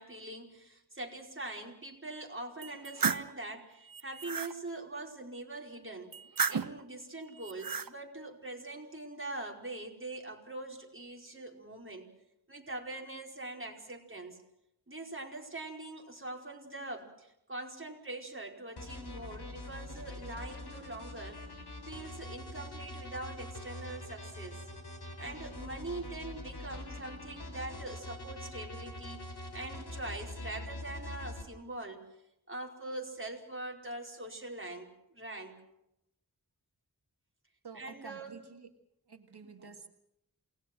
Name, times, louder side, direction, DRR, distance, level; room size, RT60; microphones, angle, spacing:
voice 1, 0.0-6.2 6.5-12.1 12.5-14.4 14.9-21.5 21.9-24.6 25.2-32.1 32.5-35.6 37.7-38.4, right 2 dB, 30° right, 1 dB, 4.8 m, -43 dB
sound 1, 2.6-3.3 3.9-4.5 6.1-6.8 7.4-7.9, right 6 dB, 60° right, 0.9 m, -33 dB
sound 2, 18.8-31.4, left 1 dB, 80° left, 4.0 m, -44 dB
voice 2, 37.6-38.7 39.1-39.9, right 5 dB, 80° right, 5 dB, 2.1 m, -49 dB
28.5 x 19.5 x 6.2 m, 0.80 s
wide cardioid pair, 60°, 39 cm